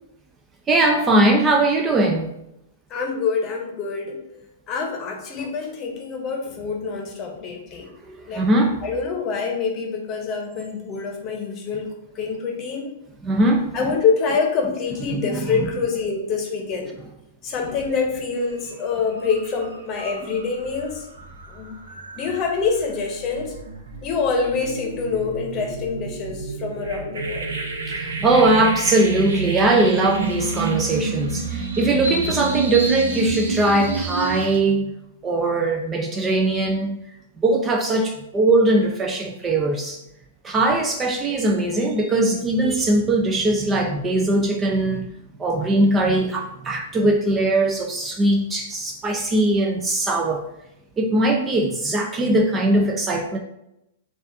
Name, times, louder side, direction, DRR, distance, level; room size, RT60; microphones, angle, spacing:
voice 1, 0.7-2.3 8.1-8.8 13.2-13.9 15.1-15.7 27.9-34.9 35.2-37.0 37.4-40.0 40.4-45.1 45.4-50.4 51.0-53.4, right 2 dB, 20° right, 3 dB, 0.4 m, -20 dB
voice 2, 2.9-7.9 8.3-8.4 8.8-11.9 12.1-12.9 13.7-16.9 17.4-21.1 21.5-21.8 22.1-23.6 24.0-27.6 52.7-52.8, left 5 dB, 30° left, 1 dB, 0.9 m, -26 dB
sound 1, 18.5-18.7 19.1-34.6, right 3 dB, 80° right, 0.8 m, -30 dB
6.3 x 2.4 x 2.6 m, 0.83 s
hypercardioid pair, 125°, 0 cm